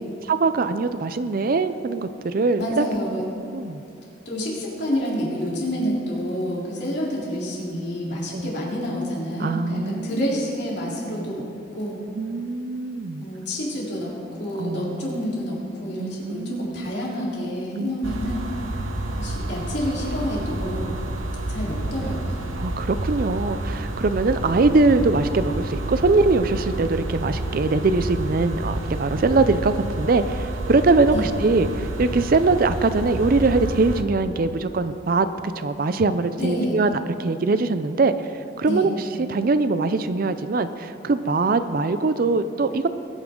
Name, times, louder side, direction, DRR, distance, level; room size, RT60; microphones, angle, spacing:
voice 1, 0.3-2.8 3.5-3.8 8.3-8.5 9.4-10.3 12.2-13.2 14.6-15.1 16.0-16.9 17.8-17.9 22.6-35.3 35.6-36.9 37.2-38.3 38.6-42.9, right 3 dB, 45° right, 11 dB, 0.4 m, -22 dB
voice 2, 2.6-3.2 4.3-11.4 11.7-12.0 13.2-18.5 19.1-20.9 21.5-22.4 31.1-31.3 36.4-36.8 38.6-38.9, equal, 55° left, -5 dB, 3.6 m, -28 dB
sound 1, 18.0-34.0, right 1 dB, 85° right, 1.1 m, -29 dB
20.5 x 9.6 x 3.8 m, 2.7 s
head